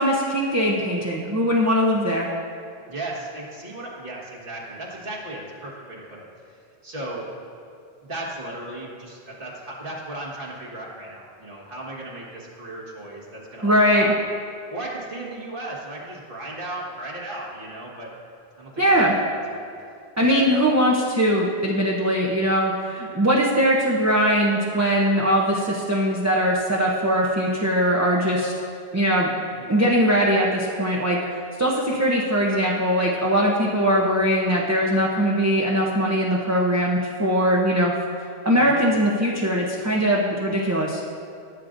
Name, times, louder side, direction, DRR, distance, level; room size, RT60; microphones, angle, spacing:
voice 1, 0.0-2.3 13.6-14.1 18.8-19.2 20.2-28.5 28.9-29.3 29.7-31.2 31.6-37.9 38.4-41.0, equal, 20° right, -4 dB, 0.6 m, -21 dB
voice 2, 2.9-6.3 6.8-7.3 8.0-14.2 14.7-18.1 18.6-19.6 20.2-20.6 29.6-29.7 33.9-34.0 38.5-38.8, right 1 dB, 55° right, -5 dB, 1.8 m, -36 dB
15.0 x 7.5 x 2.6 m, 2.4 s
omnidirectional pair, 1.1 m